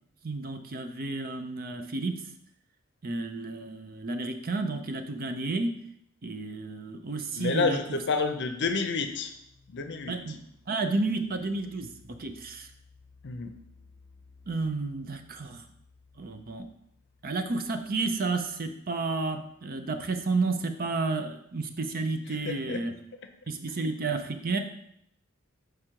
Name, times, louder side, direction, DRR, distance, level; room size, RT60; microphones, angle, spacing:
voice 1, 0.2-2.2 3.0-5.7 6.2-7.8 10.1-10.4 10.7-12.7 14.5-15.6 16.2-16.6 17.2-22.9 23.5-24.6, right 3 dB, 45° right, 7 dB, 0.6 m, -31 dB
sound 1, 7.1-22.5, left 3 dB, 25° right, 2.0 m, -61 dB
voice 2, 7.4-9.3 9.7-10.4 13.2-13.5 22.3-22.8, left 4 dB, 60° left, 7 dB, 0.6 m, -29 dB
5.0 x 4.9 x 4.5 m, 0.73 s
head